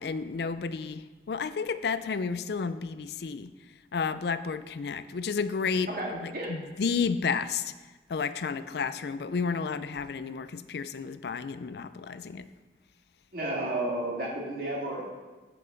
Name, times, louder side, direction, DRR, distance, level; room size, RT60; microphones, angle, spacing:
voice 1, 0.0-3.5 3.9-7.7 8.1-12.5, left 5 dB, 70° left, 13 dB, 0.4 m, -31 dB
voice 2, 5.9-6.5 13.3-15.0, right 1 dB, 55° right, -2 dB, 2.0 m, -32 dB
9.2 x 7.7 x 3.9 m, 1.3 s
head